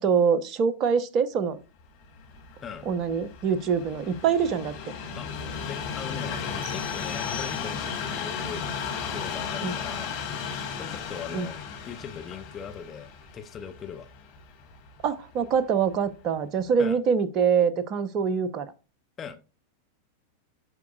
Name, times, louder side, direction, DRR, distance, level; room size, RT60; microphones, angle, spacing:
voice 1, 0.0-1.6 2.9-4.7 9.6-9.8 11.3-11.5 15.0-18.7, right 6 dB, 35° right, 0.8 m, -24 dB
Train, 2.0-15.2 15.9-16.0, left 6 dB, 50° left, 1.9 m, -35 dB
voice 2, 5.7-6.4 6.7-8.7 9.1-10.1 10.7-11.6 11.9-14.1 16.8-17.0 19.2-19.4, left 7 dB, 25° left, 0.8 m, -40 dB
sound 1, 6.6-8.2, left 5 dB, 60° right, 3.8 m, -42 dB
11.0 x 4.7 x 2.3 m
figure-of-eight pair, 90°, 0 cm